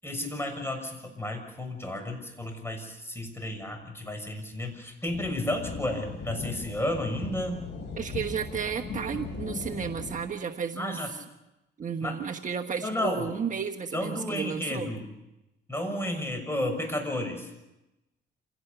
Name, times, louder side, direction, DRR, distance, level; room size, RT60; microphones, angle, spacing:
voice 1, 0.0-7.6 10.8-11.1 12.0-12.2 12.8-13.3 13.9-15.1 15.7-17.5, left 1 dB, 10° left, 5 dB, 6.5 m, -32 dB
sound 1, 5.1-10.1, left 4 dB, 60° left, 6.6 m, -38 dB
voice 2, 8.0-11.0 11.8-14.9, right 6 dB, 40° right, 3 dB, 1.3 m, -33 dB
27.5 x 17.5 x 6.9 m, 0.94 s
cardioid pair, 90°, 20 cm